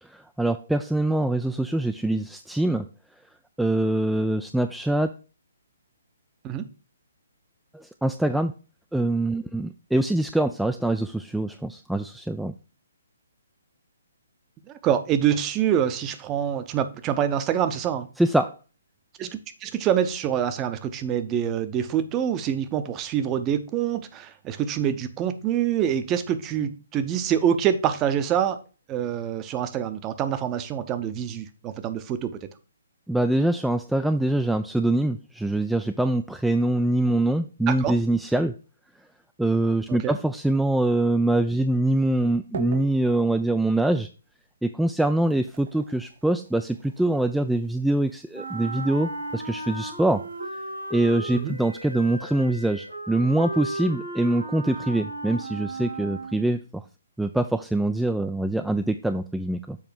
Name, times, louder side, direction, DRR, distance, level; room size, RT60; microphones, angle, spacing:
voice 1, 0.0-2.9 3.6-5.1 7.7-8.5 8.9-12.5 18.2-18.5 33.1-38.5 39.4-44.1 44.6-50.2 50.9-56.8 57.2-59.8, right 1 dB, ahead, 8 dB, 0.3 m, -24 dB
voice 2, 14.7-18.1 19.2-28.6 28.9-32.4 37.7-37.9 39.9-40.2 51.3-51.6, right 9 dB, 20° right, 11 dB, 0.8 m, -26 dB
sound 1, 41.9-52.2, right 5 dB, 50° right, 1.0 m, -46 dB
Wind instrument woodwind instrument, 48.3-56.6, right 2 dB, 75° right, 3.0 m, -35 dB
7.2 x 4.8 x 4.5 m, 0.34 s
figure-of-eight pair, 130°, 0 cm